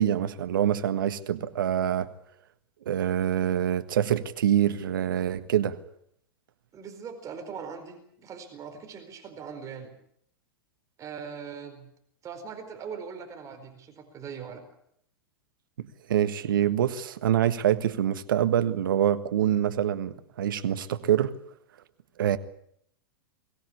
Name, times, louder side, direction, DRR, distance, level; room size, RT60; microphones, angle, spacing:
voice 1, 0.0-2.1 2.8-5.8 15.8-21.3 22.2-22.4, right 10 dB, 65° right, 1.5 m, -25 dB
voice 2, 6.7-10.0 11.0-11.9 12.2-14.6, right 6 dB, 25° right, 4.5 m, -41 dB
23.0 x 17.0 x 8.4 m
figure-of-eight pair, 100°, 12 cm